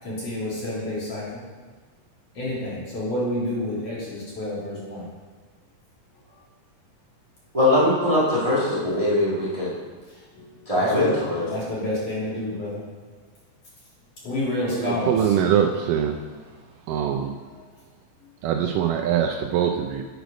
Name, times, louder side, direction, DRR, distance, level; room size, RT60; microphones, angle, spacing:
voice 1, 0.0-1.4 2.3-5.0 10.3-12.8 14.2-15.1, left 1 dB, 45° left, -8 dB, 3.4 m, -29 dB
voice 2, 7.5-9.7 10.6-11.5, left 1 dB, 35° right, -8 dB, 0.5 m, -21 dB
voice 3, 14.7-16.2 16.9-17.3 18.4-20.0, right 9 dB, 80° right, 3 dB, 2.0 m, -23 dB
8.1 x 6.4 x 5.1 m, 1.4 s
omnidirectional pair, 4.1 m